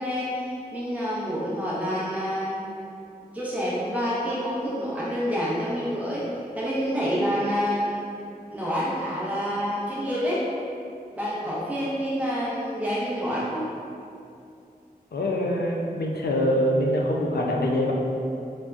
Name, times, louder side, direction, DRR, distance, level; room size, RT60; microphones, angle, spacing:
voice 1, 0.0-2.6 3.3-6.3 6.5-8.0 8.5-10.4 11.2-13.7, equal, 10° right, -8 dB, 0.5 m, -27 dB
voice 2, 15.1-17.9, equal, 80° left, -1 dB, 0.4 m, -24 dB
3.4 x 2.1 x 2.4 m, 2.5 s
wide cardioid pair, 40°, 16 cm